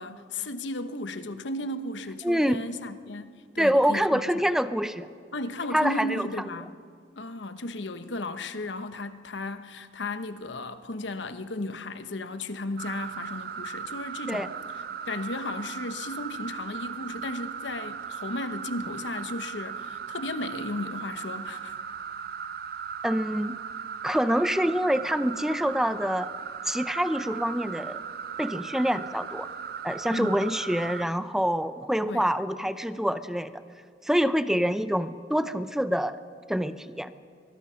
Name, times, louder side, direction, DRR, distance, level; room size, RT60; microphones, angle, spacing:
voice 1, 0.0-4.2 5.3-6.7 7.2-14.5 15.1-21.8 30.1-30.4 32.1-32.3, left 2 dB, 70° left, 1.1 m, -35 dB
voice 2, 2.2-2.7 3.6-5.1 5.7-6.3 14.3-14.5 23.0-23.6 24.0-26.3 26.7-28.0 28.4-29.5 29.8-33.5 34.0-36.2 36.5-37.1, equal, ahead, 0.6 m, -26 dB
sound 1, 12.8-31.1, right 7 dB, 55° right, 0.6 m, -37 dB
24.5 x 20.5 x 5.8 m
head